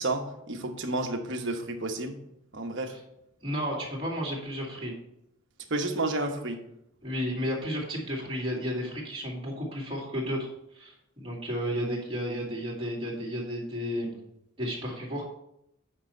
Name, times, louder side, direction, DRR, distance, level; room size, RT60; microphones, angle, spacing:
voice 1, 0.0-2.2 2.5-2.9 5.7-6.6, right 2 dB, 55° right, 4 dB, 1.0 m, -31 dB
voice 2, 3.4-4.9 7.0-14.2 14.6-15.2, equal, 25° right, -4 dB, 2.3 m, -33 dB
9.0 x 5.5 x 4.3 m, 0.79 s
head